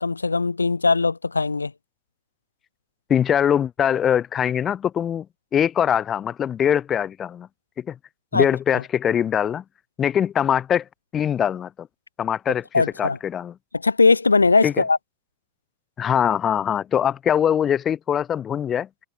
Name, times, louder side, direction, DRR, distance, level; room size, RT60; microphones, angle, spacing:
voice 1, 0.0-1.7 8.3-8.5 12.7-13.2 13.7-15.0, left 4 dB, 80° left, 3.3 m, -19 dB
voice 2, 3.1-5.3 5.5-7.5 7.8-8.0 8.3-9.6 10.0-10.8 11.1-11.9 12.2-13.5 14.6-14.7 16.0-18.9, left 9 dB, 25° left, 3.7 m, -22 dB
figure-of-eight pair, 90°, 0 cm